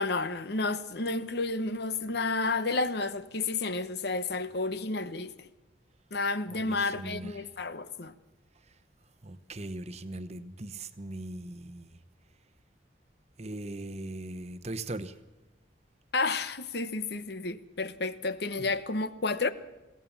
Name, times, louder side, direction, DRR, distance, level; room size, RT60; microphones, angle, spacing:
voice 1, 0.0-5.3 6.1-8.1 16.1-19.5, left 3 dB, 55° left, 1.0 m, -31 dB
voice 2, 6.5-7.5 9.2-11.9 13.4-15.1 18.6-18.7, right 2 dB, 35° right, 0.9 m, -39 dB
22.0 x 16.5 x 7.3 m
head